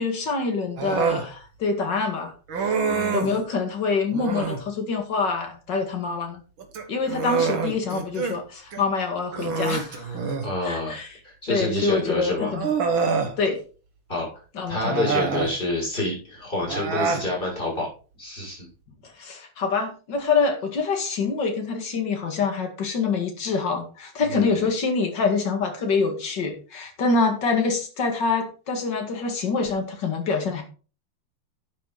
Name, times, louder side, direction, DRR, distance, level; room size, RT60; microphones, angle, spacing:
voice 1, 0.0-2.3 2.6-2.8 3.1-6.4 6.9-10.3 10.6-11.1 11.5-12.7 13.4-13.6 14.5-15.1 19.2-30.6, left 4 dB, 55° left, 4 dB, 2.7 m, -26 dB
Human voice, 0.8-1.3 2.5-3.4 4.1-4.7 6.6-8.4 8.7-8.8 9.3-10.6 11.8-11.9 12.5-13.3 14.7-15.6 16.6-17.3, right 5 dB, 70° right, 2.4 m, -26 dB
voice 2, 2.8-3.2 10.4-11.0 11.2-12.5 14.1-17.9 18.2-18.7 24.2-24.6, left 2 dB, 25° left, -4 dB, 6.8 m, -28 dB
11.0 x 8.4 x 4.0 m, 0.37 s
omnidirectional pair, 2.3 m